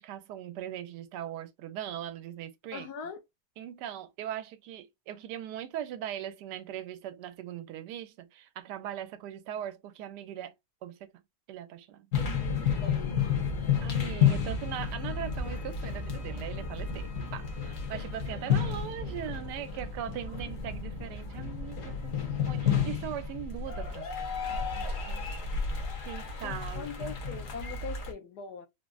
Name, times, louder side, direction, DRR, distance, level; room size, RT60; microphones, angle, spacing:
voice 1, 0.0-2.9 3.6-10.5 10.8-11.1 11.5-12.1 13.8-22.2 22.5-24.1 24.5-25.3 26.1-27.1, right 10 dB, 85° right, 1.2 m, -40 dB
voice 2, 2.7-3.2 12.2-13.9 26.4-28.7, left 5 dB, 80° left, 1.2 m, -42 dB
sound 1, 12.1-28.1, left 6 dB, 60° left, 1.2 m, -31 dB
3.7 x 2.0 x 2.3 m
omnidirectional pair, 1.7 m